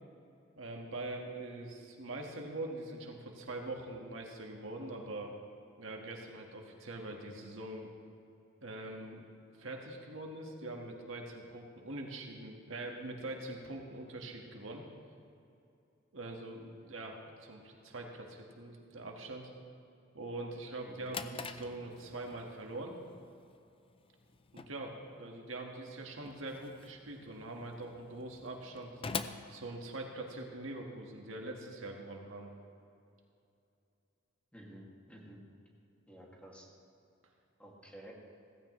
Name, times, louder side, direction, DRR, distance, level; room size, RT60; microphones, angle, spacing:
voice 1, 0.6-5.3 5.8-7.9 8.6-9.2 9.6-14.8 16.1-19.5 20.1-22.9 24.5-24.9 25.2-28.9 29.5-32.5, right 2 dB, 75° right, 1 dB, 1.6 m, -43 dB
Drawer open or close, 20.7-30.5, left 5 dB, 25° left, 0.5 m, -46 dB
voice 2, 34.5-35.4 36.1-36.7 37.6-38.1, right 1 dB, 5° left, -3 dB, 2.2 m, -52 dB
16.0 x 15.5 x 3.2 m, 2.7 s
head